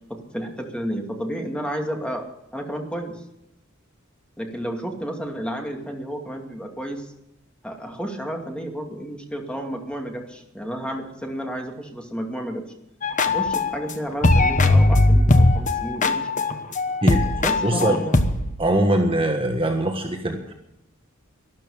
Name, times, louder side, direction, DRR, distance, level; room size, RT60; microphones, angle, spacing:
voice 1, 0.1-2.2 2.5-3.2 4.4-7.1 7.6-12.6 13.3-16.5 17.4-18.2, equal, 5° left, 2 dB, 2.3 m, -31 dB
sound 1, 13.0-13.9 14.2-18.6, left 2 dB, 40° left, 1.2 m, -19 dB
voice 2, 17.0-18.0 18.6-20.5, right 1 dB, 25° right, 4 dB, 1.5 m, -22 dB
13.0 x 13.0 x 7.2 m, 0.82 s
head